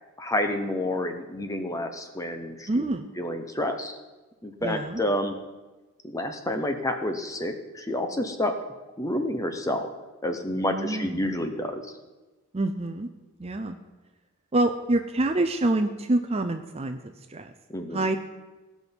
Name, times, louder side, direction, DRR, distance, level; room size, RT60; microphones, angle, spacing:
voice 1, 0.2-2.8 3.2-3.9 4.4-5.3 6.0-8.5 9.0-9.9 10.2-11.8 17.7-18.0, left 1 dB, 15° left, 6 dB, 0.9 m, -29 dB
voice 2, 2.7-3.1 4.6-5.0 10.7-11.3 12.5-13.1 13.4-13.8 14.5-17.0 17.3-17.5 17.9-18.2, right 2 dB, 25° right, 7 dB, 0.5 m, -26 dB
18.5 x 6.2 x 5.3 m, 1.2 s
head